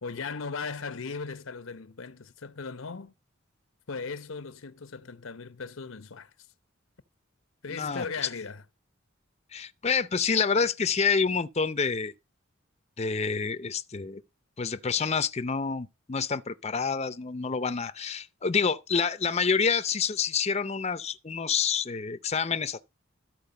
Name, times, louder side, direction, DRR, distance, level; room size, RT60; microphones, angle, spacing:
voice 1, 0.0-3.1 3.9-6.5 7.6-8.6, left 4 dB, 80° left, 0.8 m, -38 dB
voice 2, 7.7-8.0 9.5-12.1 13.0-14.2 14.6-22.9, left 5 dB, 30° left, 0.6 m, -28 dB
13.5 x 4.6 x 6.8 m
head